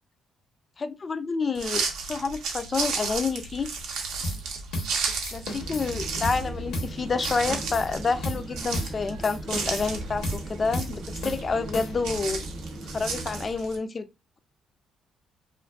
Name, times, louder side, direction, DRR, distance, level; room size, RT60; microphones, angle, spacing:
voice 1, 0.8-3.7 5.3-12.4 12.8-14.1, left 4 dB, 35° left, 0.3 m, -29 dB
sound 1, 1.5-13.8, right 4 dB, 85° right, 0.5 m, -34 dB
sound 2, 4.2-4.5 4.7-5.0 5.2-5.9 6.2-6.5 6.7-7.0 7.2-7.9 8.2-8.5 8.7-9.0 9.2-9.9 10.2-10.5 10.7-11.0 11.2-12.1, left 1 dB, 85° left, 0.9 m, -34 dB
sound 3, 5.5-13.5, right 2 dB, 45° right, 0.6 m, -40 dB
2.5 x 2.4 x 2.2 m
cardioid pair, 90°, 0 cm